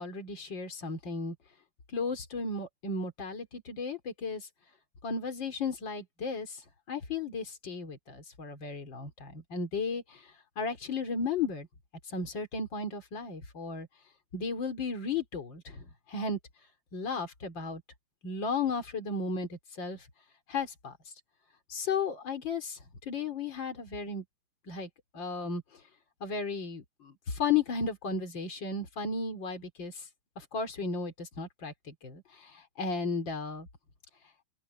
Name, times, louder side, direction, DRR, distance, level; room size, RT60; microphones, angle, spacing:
voice 1, 0.0-1.4 1.9-4.5 5.0-6.6 6.9-11.7 12.1-13.9 14.3-16.4 16.9-17.8 18.2-20.1 20.5-21.0 21.7-22.8 23.1-24.2 24.7-25.6 26.2-30.0 30.4-33.7, left 4 dB, 55° left, 4.1 m, -34 dB
open air
omnidirectional pair, 2.4 m